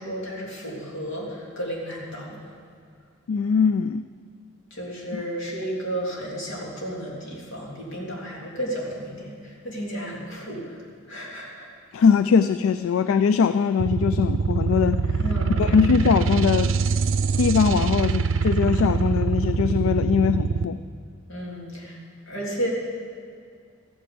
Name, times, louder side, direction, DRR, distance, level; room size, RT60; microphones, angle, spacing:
voice 1, 0.0-2.6 4.7-11.7 15.2-15.8 21.3-22.0 22.3-22.7, equal, 65° left, -4 dB, 3.3 m, -33 dB
voice 2, 3.3-4.0 5.1-5.2 11.9-15.0 15.6-16.7 17.4-20.8, left 6 dB, 80° left, 12 dB, 0.3 m, -21 dB
sound 1, 13.8-20.6, right 4 dB, 70° right, 0.5 m, -24 dB
14.0 x 9.3 x 6.9 m, 2.3 s
head